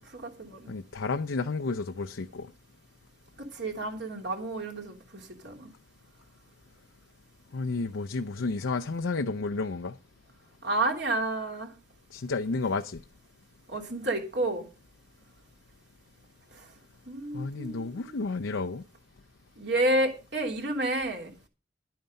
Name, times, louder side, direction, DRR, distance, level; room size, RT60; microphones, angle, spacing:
voice 1, 0.1-0.7 3.4-5.7 10.6-11.7 13.7-14.7 16.5-16.7 17.1-18.2 19.6-21.3, right 1 dB, 60° right, 3.1 m, -30 dB
voice 2, 0.7-2.5 7.5-9.9 12.1-13.0 17.3-18.8, left 3 dB, 80° left, 0.6 m, -31 dB
11.5 x 9.2 x 5.3 m
head